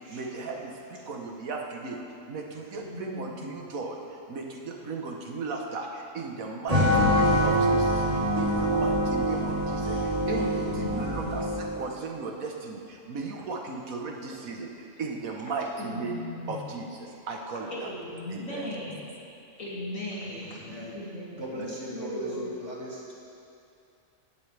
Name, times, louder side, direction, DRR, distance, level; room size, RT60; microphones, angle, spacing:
voice 1, 0.1-2.0 2.3-4.0 4.3-8.0 8.4-14.7 15.0-16.2 16.5-17.9 18.3-18.7, right 4 dB, 85° right, 1 dB, 1.6 m, -36 dB
voice 2, 2.7-3.5 8.9-9.8 10.5-11.5 15.8-16.7 17.1-17.2 17.7-19.0 19.6-22.5, left 1 dB, 75° left, -7 dB, 3.3 m, -39 dB
sound 1, 6.7-11.8, equal, 25° right, 3.1 m, -25 dB
voice 3, 20.3-20.9 21.4-23.1, right 1 dB, 55° right, -6 dB, 2.8 m, -39 dB
17.5 x 12.0 x 3.4 m, 2.6 s
omnidirectional pair, 1.4 m